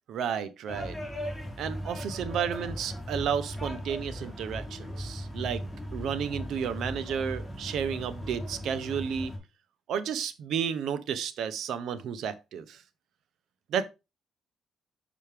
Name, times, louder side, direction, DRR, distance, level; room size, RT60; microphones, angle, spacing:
voice 1, 0.1-0.9 1.6-5.6 5.9-9.3 9.9-12.8 13.7-13.9, right 7 dB, 75° right, 0.7 m, -32 dB
sound 1, 0.7-9.4, equal, ahead, 2.5 m, -38 dB
5.7 x 5.0 x 3.3 m
cardioid pair, 90°, 0 cm